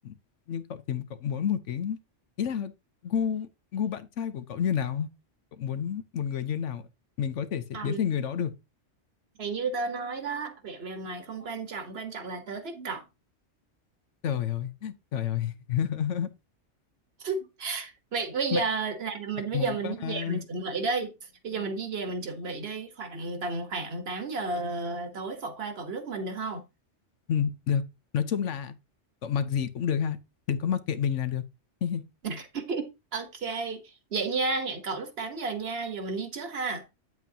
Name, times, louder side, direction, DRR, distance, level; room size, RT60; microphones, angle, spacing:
voice 1, 0.5-2.0 2.4-2.7 3.0-5.1 5.6-6.8 7.2-8.5 14.2-16.3 18.5-18.6 19.5-20.4 27.3-27.8 28.1-28.7 29.2-30.2 30.5-31.4 31.8-32.0, left 8 dB, 80° left, 1.1 m, -29 dB
voice 2, 7.7-8.0 9.4-13.0 17.2-26.6 32.2-36.8, right 4 dB, 60° right, 1.5 m, -32 dB
9.1 x 7.8 x 2.8 m
omnidirectional pair, 1.2 m